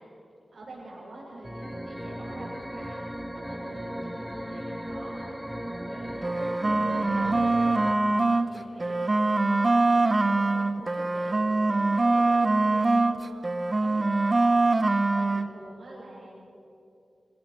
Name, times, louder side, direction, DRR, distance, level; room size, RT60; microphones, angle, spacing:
voice 1, 0.5-3.1 3.3-16.4, right 1 dB, 65° right, -8 dB, 6.5 m, -46 dB
sound 1, 1.4-7.9, equal, 5° right, 1.1 m, -36 dB
sound 2, 6.1-8.5 8.8-13.2 13.4-15.5, right 2 dB, 35° right, 1.0 m, -23 dB
25.5 x 17.0 x 6.9 m, 2.7 s
wide cardioid pair, 80°, 0 cm